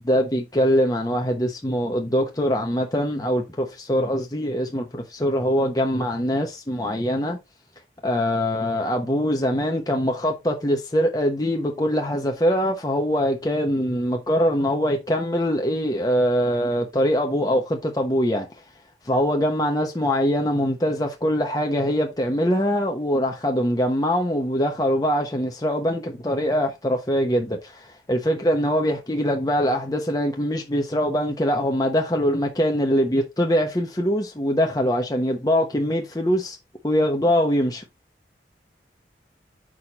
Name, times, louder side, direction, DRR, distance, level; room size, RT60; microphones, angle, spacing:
voice 1, 0.0-7.4 8.0-18.5 19.1-36.6 36.8-37.8, equal, 20° left, 0.9 m, -23 dB
6.4 x 5.7 x 3.0 m
head